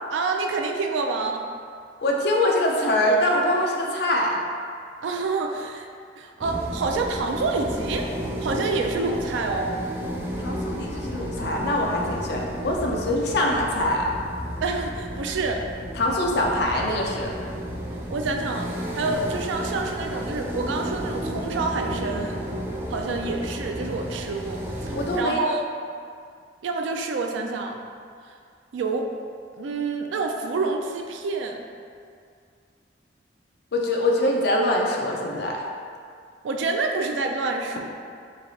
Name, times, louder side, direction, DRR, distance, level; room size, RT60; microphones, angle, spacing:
voice 1, 0.1-1.5 5.0-5.9 6.2-8.1 8.4-9.8 14.6-15.6 18.1-22.4 22.9-25.6 26.6-27.8 28.7-29.1 29.6-31.6 36.4-37.9, right 3 dB, 85° right, 3 dB, 0.4 m, -27 dB
voice 2, 2.0-4.4 10.4-14.1 16.0-17.3 24.9-25.4 33.7-35.6, left 1 dB, 60° left, -1 dB, 0.5 m, -23 dB
sound 1, 6.4-25.2, equal, 10° right, 0.3 m, -32 dB
3.3 x 2.4 x 3.8 m, 2.3 s
head